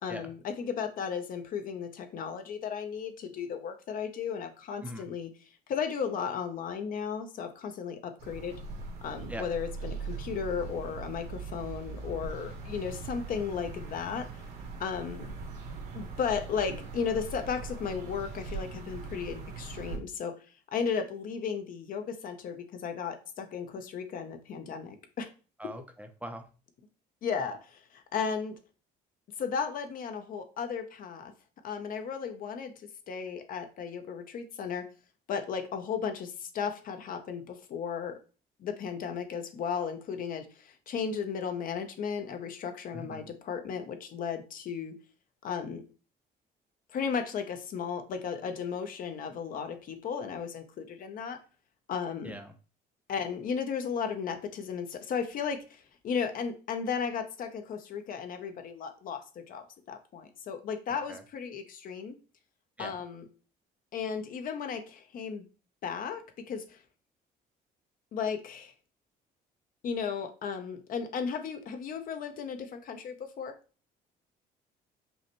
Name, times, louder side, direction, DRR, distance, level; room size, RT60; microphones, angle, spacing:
voice 1, 0.0-5.3 5.7-8.5 9.0-14.3 14.8-15.3 15.9-20.4 20.7-25.3 27.2-28.6 29.4-31.3 31.6-32.7 33.1-34.8 35.3-38.2 38.6-44.9 45.4-45.8 46.9-51.4 51.9-52.4 53.1-62.2 62.8-63.2 63.9-65.5 65.8-66.8 68.1-68.7 69.8-73.5, left 6 dB, 55° left, 7 dB, 0.7 m, -35 dB
sound 1, 8.2-20.0, right 4 dB, 70° right, 1.2 m, -41 dB
voice 2, 25.6-26.4 42.9-43.3 52.2-52.5 61.1-61.2 62.8-63.0, equal, 10° right, 6 dB, 0.5 m, -41 dB
5.4 x 2.2 x 2.9 m, 0.35 s
cardioid pair, 110°, 17 cm